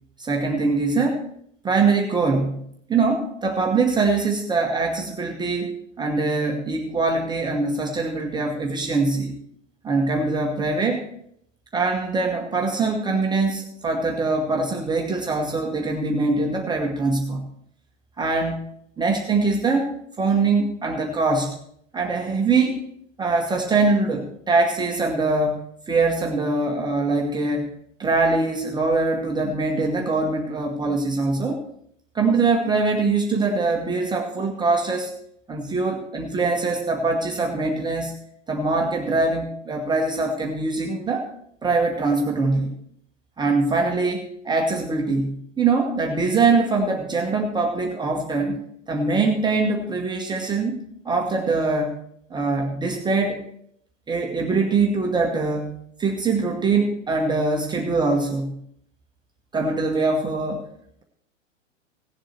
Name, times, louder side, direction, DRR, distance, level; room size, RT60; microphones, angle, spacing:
voice 1, 0.2-1.2 1.6-9.3 9.8-11.0 11.7-17.5 18.2-18.7 19.0-19.9 20.2-21.6 21.9-22.8 23.2-27.7 28.0-31.6 32.1-35.1 35.5-38.2 38.5-41.3 41.6-42.7 43.4-48.6 48.9-50.8 51.0-52.0 52.3-53.4 54.1-58.6 59.5-60.7, right 3 dB, 10° right, 1 dB, 1.1 m, -23 dB
17.0 x 7.5 x 4.5 m, 0.69 s
figure-of-eight pair, 95°, 37 cm